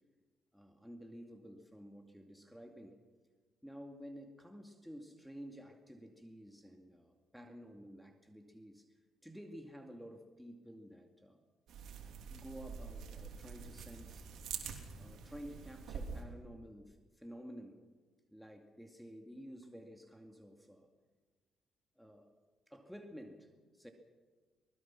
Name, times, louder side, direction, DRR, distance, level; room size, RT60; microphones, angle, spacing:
voice 1, 0.5-3.0 3.6-8.9 9.2-11.4 12.3-14.3 15.0-17.8 18.3-20.9 22.0-22.3 22.7-23.9, equal, ahead, 4 dB, 2.3 m, -52 dB
sound 1, 11.7-16.2, right 6 dB, 75° right, 3.2 m, -46 dB
24.5 x 20.0 x 6.0 m, 1.3 s
cardioid pair, 90°, 0 cm